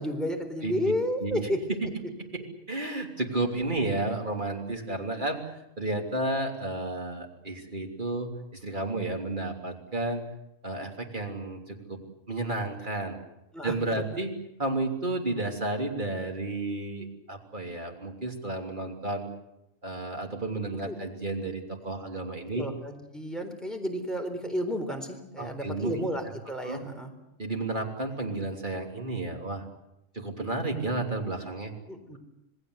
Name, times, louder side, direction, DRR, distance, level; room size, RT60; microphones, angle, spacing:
voice 1, 0.0-1.6 13.5-14.0 20.7-21.0 22.5-27.1 31.9-32.2, equal, ahead, 3 dB, 3.9 m, -32 dB
voice 2, 2.7-5.4 5.8-10.2 10.6-12.0 12.3-13.2 13.6-14.3 14.6-19.3 19.8-22.7 25.4-26.0 26.6-26.8 27.4-29.6 30.1-31.7, right 2 dB, 35° right, 3 dB, 3.3 m, -32 dB
27.5 x 19.5 x 8.1 m, 0.85 s
omnidirectional pair, 1.4 m